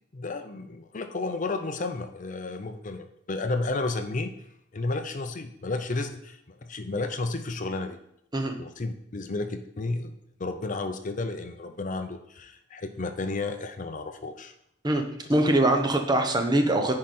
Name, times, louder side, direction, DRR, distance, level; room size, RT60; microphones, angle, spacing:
voice 1, 0.1-4.3 4.7-8.0 8.6-10.1 10.4-14.5, left 3 dB, 40° left, 8 dB, 0.6 m, -32 dB
voice 2, 14.8-17.0, right 1 dB, 20° right, 4 dB, 0.9 m, -23 dB
10.0 x 4.9 x 4.3 m, 0.75 s
head